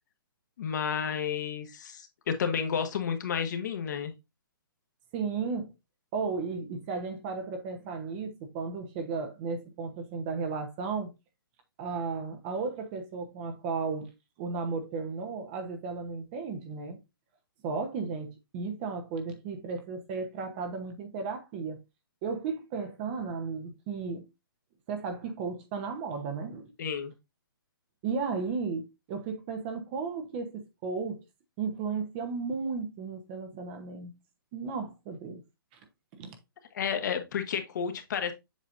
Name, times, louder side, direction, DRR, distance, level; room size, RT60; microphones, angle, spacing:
voice 1, 0.6-4.1 26.8-27.1 36.7-38.3, left 7 dB, 50° left, 1.3 m, -31 dB
voice 2, 5.1-5.7 6.1-11.1 11.8-14.1 14.4-17.0 17.6-21.8 22.2-24.3 24.9-26.7 28.0-31.2 31.6-34.1 34.5-35.4 36.1-36.4, right 4 dB, 25° right, 0.9 m, -34 dB
7.4 x 5.0 x 2.6 m
hypercardioid pair, 160°, 12 cm